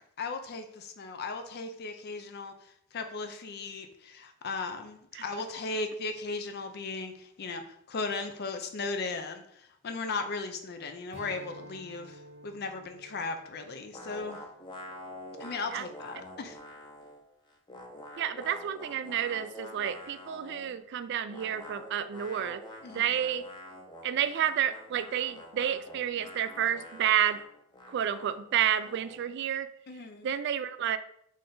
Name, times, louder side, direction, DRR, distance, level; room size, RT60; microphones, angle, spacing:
voice 1, 0.2-2.5 2.9-7.6 7.9-14.4 15.4-16.6 22.8-23.1 29.9-30.3, left 3 dB, 50° left, 7 dB, 0.5 m, -37 dB
Strum, 11.1-15.8, equal, 35° right, 0.9 m, -52 dB
sound 1, 13.9-17.2 17.5-20.8 21.3-29.3, left 1 dB, 20° left, 0.7 m, -47 dB
voice 2, 18.2-22.6 22.9-23.4 24.0-27.4 27.9-29.7 30.2-31.0, right 10 dB, 55° right, 12 dB, 0.3 m, -30 dB
3.9 x 3.3 x 3.8 m, 0.71 s
head